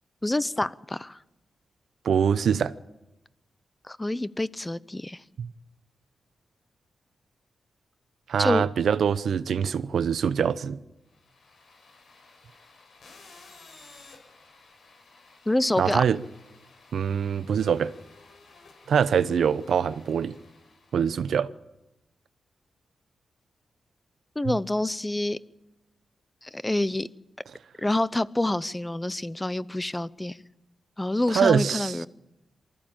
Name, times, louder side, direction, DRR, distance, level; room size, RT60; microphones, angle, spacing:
voice 1, 0.2-1.2 3.9-5.2 8.4-8.7 15.5-16.0 24.4-25.4 26.4-27.1 27.8-30.4 31.0-32.1, left 1 dB, 15° left, 0.7 m, -27 dB
voice 2, 2.0-2.7 5.4-5.5 8.3-10.8 15.8-16.2 16.9-17.9 18.9-20.4 20.9-21.5 31.3-32.0, right 7 dB, 80° right, 0.7 m, -24 dB
sound 1, 11.1-21.3, left 3 dB, 75° left, 5.2 m, -54 dB
23.5 x 14.5 x 8.9 m
cardioid pair, 70°, 0 cm